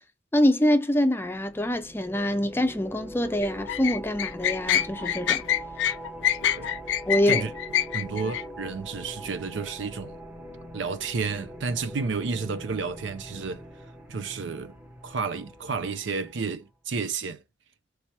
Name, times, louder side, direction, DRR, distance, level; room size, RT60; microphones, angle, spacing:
voice 1, 0.3-5.4 7.1-7.4, left 1 dB, 15° left, 0.5 m, -25 dB
sound 1, 1.2-16.6, equal, 10° right, 0.9 m, -42 dB
sound 2, 3.4-8.4, left 10 dB, 80° left, 0.3 m, -25 dB
voice 2, 7.9-10.2 10.7-13.6 14.1-14.7 15.0-17.4, right 4 dB, 85° right, 0.6 m, -31 dB
3.3 x 2.9 x 4.5 m
head